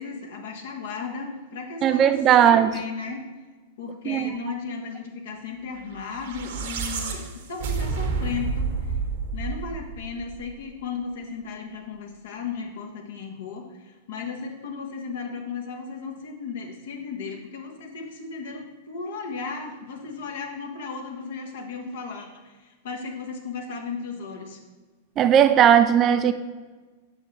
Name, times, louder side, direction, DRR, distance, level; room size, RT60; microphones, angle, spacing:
voice 1, 0.0-3.3 3.8-8.7 9.3-24.6, left 5 dB, 60° left, 1 dB, 1.3 m, -35 dB
voice 2, 1.8-2.7 4.1-4.4 25.2-26.3, right 9 dB, 30° right, 10 dB, 0.4 m, -17 dB
sound 1, 6.1-10.5, right 4 dB, 55° right, 1.1 m, -29 dB
8.7 x 6.9 x 3.2 m, 1.3 s
figure-of-eight pair, 95°, 0 cm